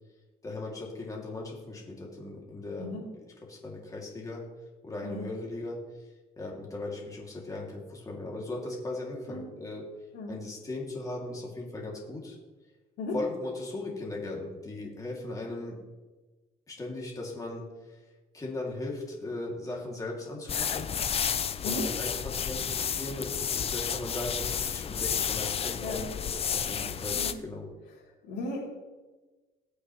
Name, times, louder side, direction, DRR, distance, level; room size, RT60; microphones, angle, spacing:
voice 1, 0.4-2.9 3.5-4.4 4.8-5.8 6.4-9.8 10.3-12.4 13.1-15.8 16.7-18.0 18.3-20.9 21.3-26.0 26.5-27.7, left 2 dB, 20° left, -2 dB, 2.6 m, -38 dB
sound 1, 20.5-27.3, left 7 dB, 35° left, 0.6 m, -31 dB
voice 2, 21.6-21.9 25.8-26.0 27.1-27.4 28.2-28.6, left 2 dB, 85° left, -9 dB, 3.4 m, -35 dB
20.0 x 6.6 x 3.2 m, 1.2 s
cardioid pair, 110°, 17 cm